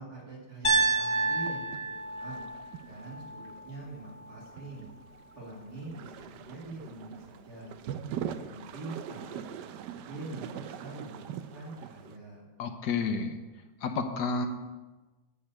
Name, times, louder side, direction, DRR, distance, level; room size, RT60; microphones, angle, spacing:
voice 1, 0.0-1.7 2.1-2.5 2.8-4.9 5.3-7.8 8.2-12.4, right 2 dB, 60° right, -3 dB, 3.1 m, -44 dB
Piano, 0.6-4.7, right 3 dB, 20° left, 1.0 m, -31 dB
sound 1, 1.1-12.2, right 9 dB, 80° right, 1.2 m, -43 dB
voice 2, 12.6-13.4 13.8-14.5, left 4 dB, 75° left, 6 dB, 1.5 m, -30 dB
10.5 x 5.5 x 7.9 m, 1.2 s
omnidirectional pair, 1.8 m